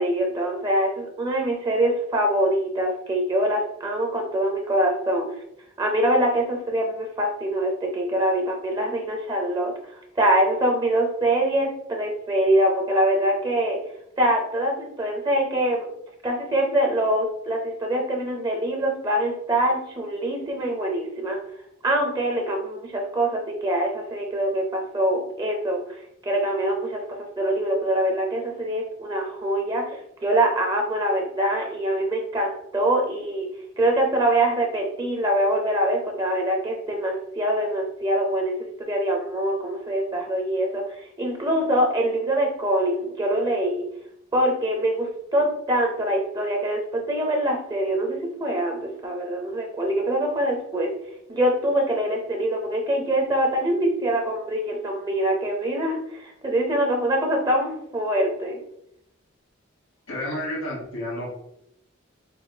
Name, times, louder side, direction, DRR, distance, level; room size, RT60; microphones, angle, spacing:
voice 1, 0.0-5.4 5.8-13.8 14.2-15.9 16.2-21.4 21.8-27.0 27.4-33.5 33.8-43.8 44.3-50.9 51.3-58.6, right 1 dB, 20° right, 1 dB, 0.4 m, -24 dB
voice 2, 60.1-61.3, left 1 dB, 85° left, -3 dB, 1.4 m, -30 dB
4.6 x 2.3 x 2.7 m, 0.76 s
head